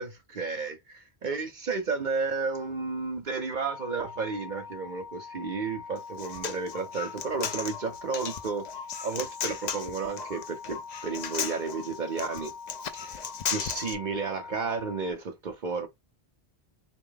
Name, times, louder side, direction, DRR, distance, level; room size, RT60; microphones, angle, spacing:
voice 1, 0.0-8.7 9.0-12.5 13.0-15.9, right 4 dB, 50° right, 0.7 m, -32 dB
sound 1, 3.7-15.1, left 6 dB, 80° left, 0.9 m, -44 dB
Human voice, 6.0-13.9, left 7 dB, 55° left, 0.5 m, -36 dB
3.4 x 2.3 x 3.8 m
omnidirectional pair, 1.1 m